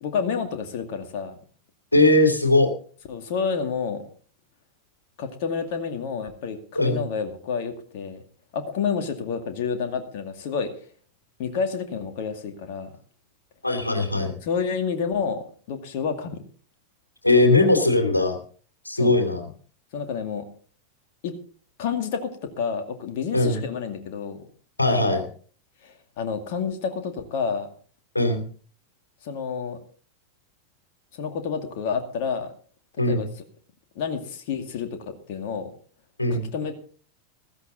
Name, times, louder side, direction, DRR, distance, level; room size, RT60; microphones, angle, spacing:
voice 1, 0.0-1.3 3.1-4.0 5.2-8.2 8.5-10.7 11.4-12.9 14.4-16.4 19.0-19.2 19.9-20.5 21.2-21.3 21.8-24.4 25.8-27.7 29.2-29.8 31.2-32.5 33.1-33.3 34.0-35.7 36.3-36.7, left 6 dB, 50° left, 6 dB, 2.2 m, -29 dB
voice 2, 1.9-2.7 6.7-7.1 13.6-14.3 17.2-18.4 18.8-19.5 23.3-23.6 24.8-25.2 28.1-28.4 33.0-33.3 36.2-36.5, left 2 dB, 85° left, 5 dB, 2.9 m, -20 dB
15.0 x 14.5 x 4.0 m, 0.43 s
figure-of-eight pair, 90°, 0 cm